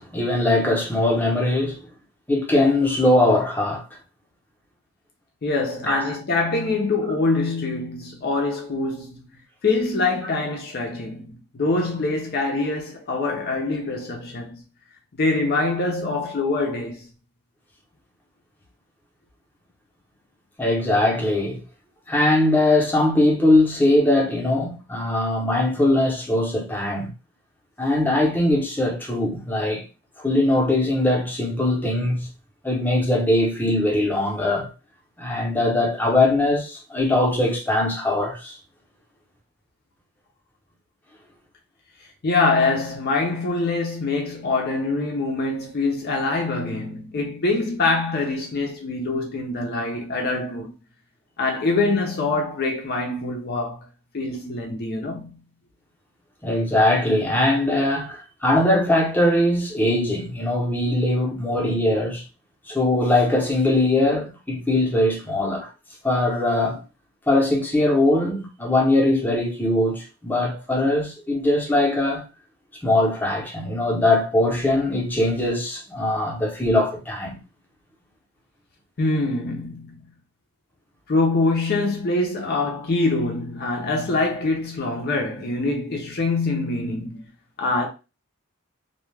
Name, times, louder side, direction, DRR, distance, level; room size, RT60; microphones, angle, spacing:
voice 1, 0.0-1.8 2.3-3.9 5.9-6.1 20.6-21.6 22.1-27.1 27.8-29.8 30.2-32.3 32.6-34.7 35.2-38.6 56.4-62.2 62.7-65.7 66.0-66.8 67.3-72.2 72.8-77.4, left 1 dB, 10° left, 0.7 m, -21 dB
voice 2, 5.4-9.2 9.6-14.6 15.1-17.1 42.2-50.7 51.4-53.8 54.1-55.4 79.0-80.0 81.1-87.2 87.6-87.9, left 3 dB, 45° left, 0.5 m, -24 dB
2.3 x 2.1 x 3.1 m
head